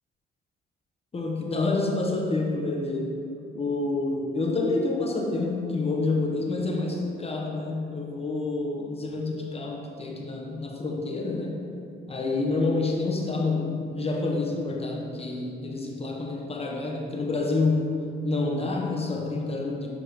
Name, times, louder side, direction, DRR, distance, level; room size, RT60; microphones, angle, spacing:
voice 1, 1.1-3.2 3.5-11.6 12.1-19.9, left 3 dB, 30° left, 0 dB, 0.8 m, -28 dB
6.9 x 2.9 x 4.8 m, 2.5 s
cardioid pair, 90°, 20 cm